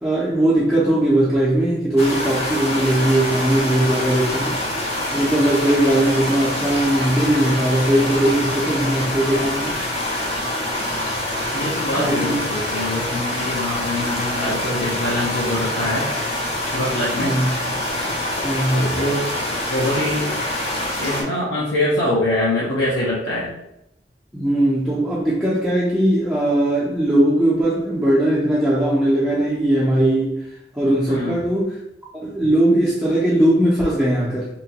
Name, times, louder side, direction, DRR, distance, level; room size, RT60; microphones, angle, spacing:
voice 1, 0.0-4.5 5.1-9.7 12.0-12.3 17.2-17.5 18.4-18.9 24.3-30.3 30.7-31.8 32.1-34.5, right 1 dB, 5° right, -8 dB, 0.4 m, -19 dB
sound 1, 2.0-21.2, left 1 dB, 35° left, 0.6 m, -25 dB
voice 2, 11.5-16.1 16.4-17.4 18.7-19.3 19.7-20.3 21.0-23.5 31.1-31.4, left 1 dB, 85° left, -7 dB, 0.7 m, -24 dB
2.8 x 2.2 x 2.8 m, 0.82 s
head